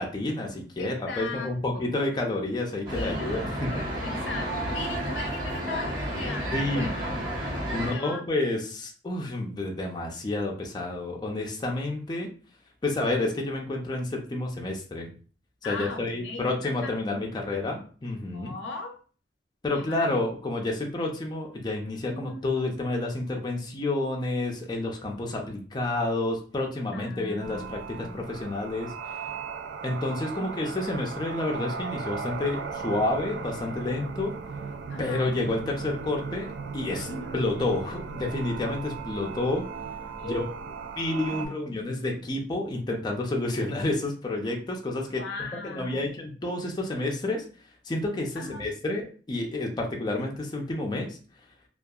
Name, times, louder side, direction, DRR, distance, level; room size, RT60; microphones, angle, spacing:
voice 1, 0.0-3.8 6.5-6.9 7.7-12.3 12.8-15.1 15.7-18.5 19.6-29.2 29.8-34.3 35.0-36.5 36.7-37.1 37.3-39.6 40.2-40.5 41.0-45.2 45.6-47.4 47.8-51.2, left 2 dB, 25° left, 0 dB, 0.4 m, -29 dB
voice 2, 0.8-2.0 2.9-3.5 4.0-7.1 7.7-8.2 15.6-17.2 18.3-19.0 19.7-20.2 22.1-22.5 26.9-28.2 30.4-30.9 34.9-35.3 37.1-37.4 40.2-40.6 41.3-41.8 45.1-46.3 48.3-48.7, left 3 dB, 90° left, 3 dB, 0.6 m, -39 dB
sound 1, 2.8-7.9, right 1 dB, 25° right, 1.3 m, -31 dB
sound 2, 27.4-41.5, right 5 dB, 70° right, 0.3 m, -37 dB
2.7 x 2.3 x 2.3 m, 0.40 s
head